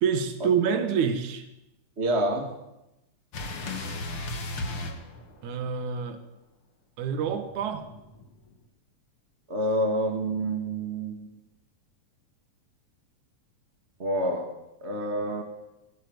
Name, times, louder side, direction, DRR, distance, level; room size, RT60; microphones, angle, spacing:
voice 1, 0.0-1.4 5.4-6.2 7.0-7.9, right 7 dB, 60° right, 8 dB, 2.9 m, -27 dB
voice 2, 2.0-2.6 9.5-11.3 14.0-14.5 14.8-15.4, right 1 dB, 25° right, 2 dB, 1.8 m, -28 dB
sound 1, 3.3-5.8 7.2-8.5, left 2 dB, 40° left, 2.7 m, -36 dB
21.5 x 16.5 x 8.1 m, 0.93 s
omnidirectional pair, 4.1 m